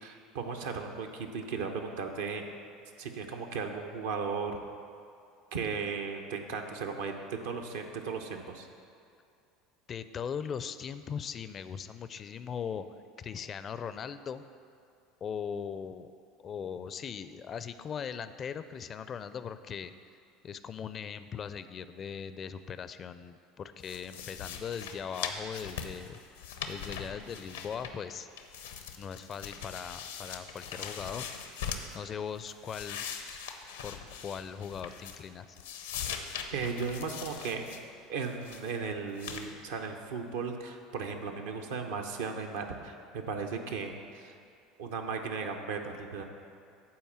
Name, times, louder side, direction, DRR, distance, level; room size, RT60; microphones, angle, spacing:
voice 1, 0.0-2.5 3.0-4.6 5.5-8.7 36.5-37.8 38.1-44.3 44.8-46.2, right 5 dB, 75° right, 4 dB, 0.8 m, -36 dB
voice 2, 9.9-12.9 13.2-14.4 15.2-16.1 16.4-19.9 20.4-26.2 26.7-28.3 29.0-31.3 31.9-33.1 33.8-34.0 34.2-35.6, left 7 dB, 40° left, 12 dB, 0.4 m, -39 dB
sound 1, 23.8-28.1 28.4-32.0 32.4-35.3 35.6-37.8 38.2-38.7 39.2-39.5, left 7 dB, 80° left, 0.7 m, -41 dB
8.6 x 4.4 x 7.3 m, 2.4 s
hypercardioid pair, 80°, 0 cm